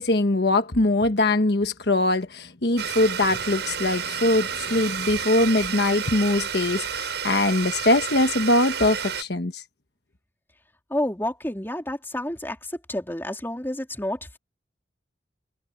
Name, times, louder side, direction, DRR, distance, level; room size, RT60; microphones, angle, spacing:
voice 1, 0.0-9.6, left 2 dB, 65° left, 1.3 m, -22 dB
Domestic sounds home sounds, 2.8-9.2, right 7 dB, 75° right, 5.9 m, -30 dB
voice 2, 10.9-14.4, left 1 dB, 10° left, 3.4 m, -30 dB
head